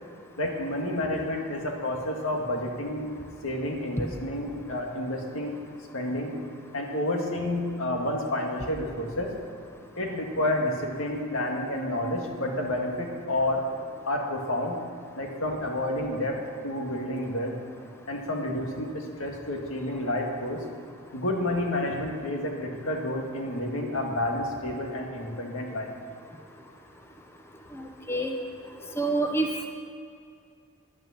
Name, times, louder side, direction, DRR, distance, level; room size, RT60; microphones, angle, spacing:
voice 1, 0.4-3.1 3.4-5.6 5.9-6.3 6.7-9.3 10.0-13.6 14.0-14.8 15.2-17.6 18.1-20.6 21.1-25.9, left 1 dB, 80° left, 1 dB, 2.0 m, -30 dB
voice 2, 27.8-28.3 29.0-29.7, right 2 dB, 10° left, 2 dB, 0.9 m, -27 dB
11.0 x 8.9 x 8.6 m, 2.4 s
head